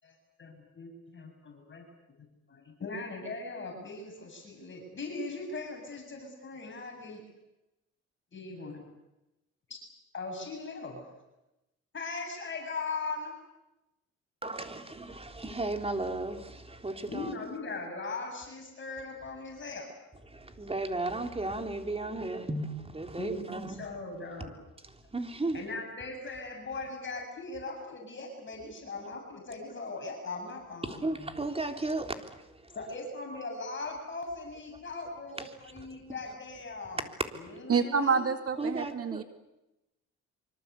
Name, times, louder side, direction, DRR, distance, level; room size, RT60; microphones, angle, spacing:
voice 1, 0.0-1.8 2.5-7.2 8.3-8.8 9.7-9.8 10.1-11.0 11.9-13.3 17.1-19.9 23.2-24.5 25.5-31.0 32.7-37.0 37.6-38.2, left 3 dB, 40° left, 7.9 m, -39 dB
voice 2, 14.4-17.3 20.2-24.0 24.8-25.6 30.8-32.8 35.3-36.2 37.0-37.1 38.5-39.2, right 2 dB, 20° right, 3.6 m, -35 dB
voice 3, 37.7-39.2, right 6 dB, 50° right, 2.2 m, -27 dB
25.0 x 25.0 x 8.4 m
cardioid pair, 90°, 30 cm